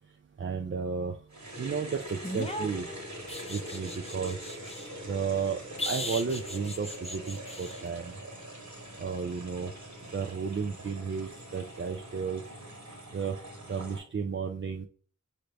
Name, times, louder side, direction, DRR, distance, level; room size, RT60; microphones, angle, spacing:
voice 1, 0.4-1.2 1.6-2.9 3.5-4.5 5.1-8.2 9.0-9.7 10.1-12.4 13.1-13.4 13.7-14.9, right 5 dB, 45° right, 4 dB, 0.4 m, -33 dB
sound 1, 1.3-14.0, right 1 dB, 70° right, 1.2 m, -43 dB
sound 2, 2.2-4.9 5.8-7.8 10.5-10.6, left 1 dB, 20° left, 0.7 m, -38 dB
5.7 x 2.6 x 3.2 m, 0.42 s
wide cardioid pair, 45°, 29 cm